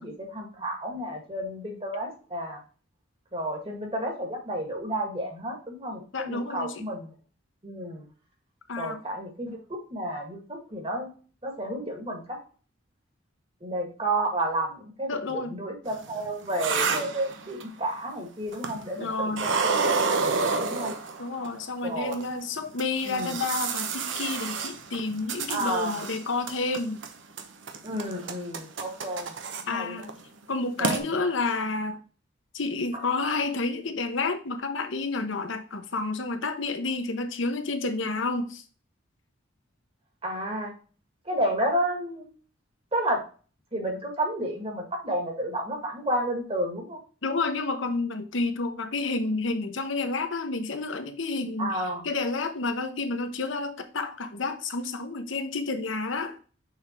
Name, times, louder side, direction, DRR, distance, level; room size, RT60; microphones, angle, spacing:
voice 1, 0.0-2.6 3.3-7.1 7.6-8.1 8.8-11.1 11.4-12.4 13.6-20.9 21.8-22.3 23.0-23.3 25.5-26.0 27.8-29.3 29.7-30.1 30.8-31.0 32.9-33.0 40.2-40.7 41.2-42.3 42.9-43.2 43.7-47.0 51.6-52.0, right 1 dB, 30° right, 1.7 m, -31 dB
voice 2, 6.1-6.8 8.7-9.0 15.1-15.6 19.0-19.5 21.2-27.0 29.7-30.1 30.5-32.0 32.5-38.6 47.2-56.4, left 3 dB, 75° left, 0.9 m, -30 dB
sound 1, 15.9-17.8 18.5-19.0 19.3-21.5 22.1-22.2 22.8-26.2 26.5-27.1 27.4-29.6 30.0-30.2 30.5-30.6 30.8-31.0, right 4 dB, 70° right, 0.9 m, -29 dB
6.5 x 3.7 x 4.3 m
head